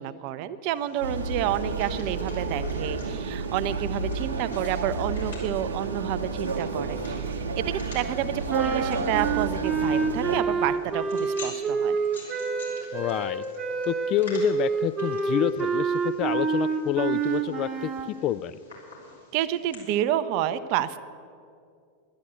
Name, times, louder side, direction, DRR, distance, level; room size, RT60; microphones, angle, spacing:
voice 1, 0.0-12.0 19.3-21.0, right 11 dB, 45° right, 13 dB, 0.5 m, -29 dB
sound 1, 0.7-19.7, left 3 dB, 75° left, 3.9 m, -49 dB
sound 2, 1.0-10.4, right 4 dB, 70° right, 1.0 m, -31 dB
sound 3, 8.5-18.1, right 5 dB, 25° right, 0.9 m, -27 dB
voice 2, 12.9-13.4 13.9-18.6, left 12 dB, 35° left, 15 dB, 0.3 m, -28 dB
11.5 x 10.0 x 7.9 m, 2.4 s
figure-of-eight pair, 90°, 0 cm